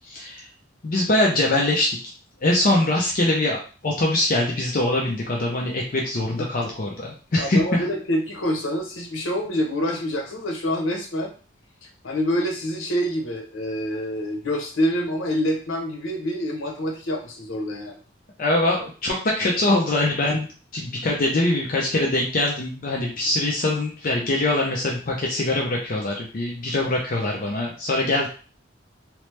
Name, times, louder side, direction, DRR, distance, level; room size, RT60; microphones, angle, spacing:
voice 1, 0.1-0.4 0.8-2.0 2.4-3.6 3.8-7.8 18.4-20.5 20.7-28.3, left 2 dB, 45° left, -1 dB, 0.5 m, -23 dB
voice 2, 6.4-6.7 7.4-11.3 12.0-18.0, equal, 85° left, 2 dB, 0.8 m, -26 dB
2.9 x 2.0 x 3.1 m, 0.38 s
head